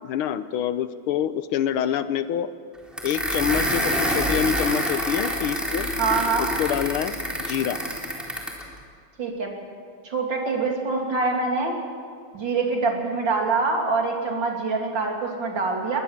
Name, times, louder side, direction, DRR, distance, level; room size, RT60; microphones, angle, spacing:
voice 1, 0.0-2.5 3.0-5.9 6.4-7.2 7.5-7.8, left 10 dB, 75° left, 12 dB, 1.7 m, -26 dB
sound 1, 3.0-8.6, equal, ahead, 3.5 m, -26 dB
voice 2, 6.0-6.5 9.2-9.6 10.0-11.8 12.3-16.0, right 4 dB, 55° right, 1 dB, 3.6 m, -25 dB
22.0 x 20.0 x 7.3 m, 2.1 s
omnidirectional pair, 2.4 m